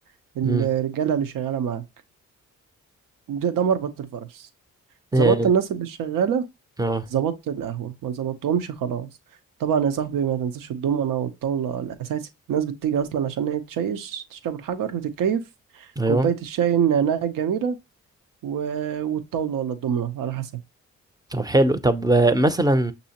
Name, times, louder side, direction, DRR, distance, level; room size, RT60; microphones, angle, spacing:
voice 1, 0.4-1.8 3.3-4.5 5.2-6.4 7.1-9.1 9.6-15.4 15.7-17.8 18.4-20.5, right 8 dB, 75° right, 0.7 m, -25 dB
voice 2, 5.1-5.5 6.8-7.1 16.0-16.3 21.3-22.9, right 1 dB, 10° right, 0.5 m, -20 dB
6.1 x 2.7 x 2.8 m
supercardioid pair, 55°, 33 cm